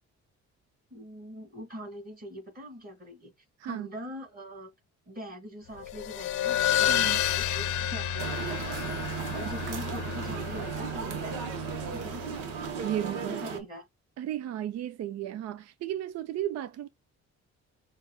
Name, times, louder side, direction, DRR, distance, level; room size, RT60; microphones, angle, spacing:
voice 1, 0.9-3.3 3.6-4.7 5.1-9.0 9.3-12.3 13.3-13.9, equal, 30° right, 2.0 m, -43 dB
sound 1, 5.8-12.9, left 10 dB, 85° left, 0.7 m, -31 dB
voice 2, 6.9-7.2 9.4-9.5 12.8-13.4 14.2-16.9, right 11 dB, 60° right, 0.5 m, -34 dB
sound 2, 8.2-13.6, right 6 dB, 90° right, 0.9 m, -35 dB
6.5 x 2.3 x 2.2 m
cardioid pair, 90°, 30 cm